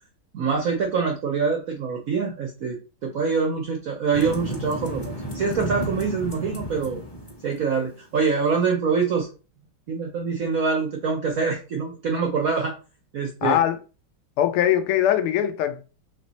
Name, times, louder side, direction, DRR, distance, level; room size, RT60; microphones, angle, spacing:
voice 1, 0.3-7.0 7.4-9.3 9.9-12.7 13.1-13.6, right 5 dB, 70° right, 0.8 m, -25 dB
sound 1, 4.1-8.0, equal, 20° left, 0.7 m, -33 dB
voice 2, 13.4-13.8 14.4-15.8, left 11 dB, 85° left, 1.5 m, -21 dB
3.5 x 3.3 x 4.0 m
omnidirectional pair, 2.3 m